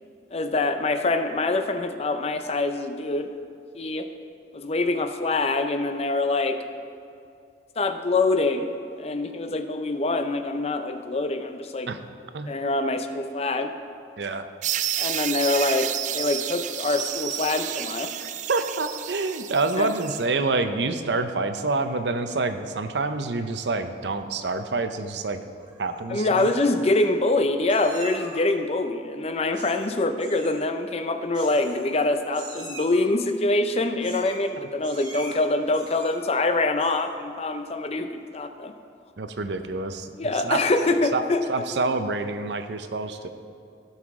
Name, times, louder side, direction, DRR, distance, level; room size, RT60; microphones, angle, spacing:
voice 1, 0.3-3.3 3.8-4.1 4.5-6.6 7.8-8.7 8.9-11.9 12.5-13.7 15.0-15.9 16.1-18.1 19.8-19.9 26.1-38.7 40.2-41.4, left 2 dB, 35° left, 8 dB, 0.6 m, -25 dB
sound 1, 14.6-20.2, right 11 dB, 45° right, 0.3 m, -30 dB
voice 2, 18.5-25.4 25.8-26.5 39.2-40.6 41.1-41.2 41.5-43.3, right 3 dB, 75° right, 8 dB, 0.6 m, -27 dB
Meow, 25.6-26.0 26.3-27.0 27.7-28.5 29.5-29.9 30.2-30.6 31.3-32.0 32.3-33.1 34.0-34.5 34.8-35.4 35.7-36.3 36.7-37.2, right 2 dB, 25° right, 1.5 m, -43 dB
17.0 x 5.7 x 3.6 m, 2.4 s
head